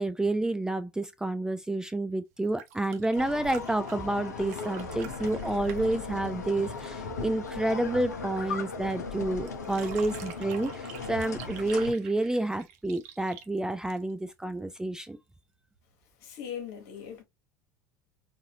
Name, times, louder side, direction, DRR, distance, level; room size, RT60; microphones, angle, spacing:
voice 1, 0.0-15.2, right 2 dB, 5° right, 0.3 m, -29 dB
sound 1, 2.4-7.1 9.5-14.3 15.8-15.9, right 9 dB, 60° right, 0.7 m, -47 dB
sound 2, 3.1-11.9, left 4 dB, 75° left, 0.6 m, -37 dB
voice 2, 16.2-17.2, left 8 dB, 60° left, 1.3 m, -39 dB
3.9 x 2.5 x 2.7 m
figure-of-eight pair, 70°, 9 cm